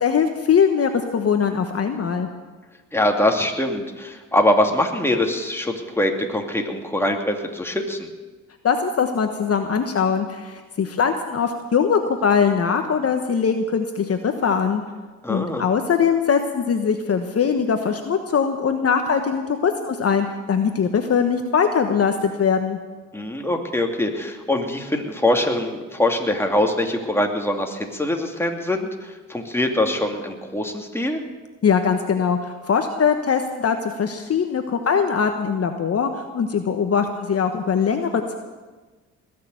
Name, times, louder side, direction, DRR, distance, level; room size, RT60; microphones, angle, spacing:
voice 1, 0.0-2.3 8.6-14.8 15.3-22.8 31.6-38.3, left 6 dB, 45° left, 6 dB, 1.3 m, -21 dB
voice 2, 2.9-8.1 15.2-15.7 23.1-31.2, left 1 dB, 5° left, 2 dB, 2.7 m, -23 dB
20.0 x 6.8 x 9.4 m, 1.3 s
supercardioid pair, 60°, 34 cm